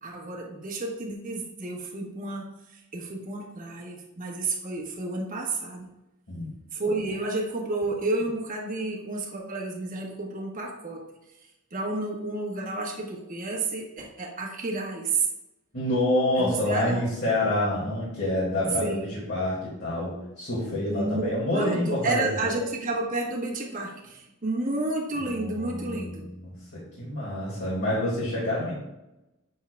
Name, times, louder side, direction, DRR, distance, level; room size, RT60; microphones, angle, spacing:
voice 1, 0.0-2.5 2.9-5.9 6.7-11.0 11.7-15.3 16.4-17.0 18.8-19.0 20.9-26.3, right 2 dB, 40° right, -1 dB, 1.3 m, -31 dB
voice 2, 15.7-22.5 25.2-28.7, left 1 dB, 55° left, -7 dB, 2.3 m, -27 dB
7.6 x 7.3 x 2.3 m, 0.92 s
head